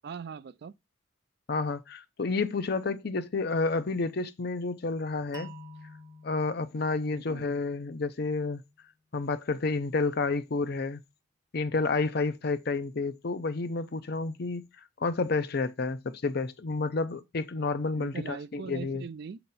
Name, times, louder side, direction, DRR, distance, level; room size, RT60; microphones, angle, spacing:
voice 1, 0.0-0.7 7.1-7.4 17.9-19.4, right 6 dB, 55° right, 0.3 m, -41 dB
voice 2, 1.5-5.5 6.2-8.6 9.1-11.0 11.5-14.7 15.0-19.0, left 3 dB, 50° left, 0.6 m, -30 dB
sound 1, 5.3-8.2, equal, 15° right, 0.6 m, -49 dB
7.5 x 3.0 x 5.3 m
head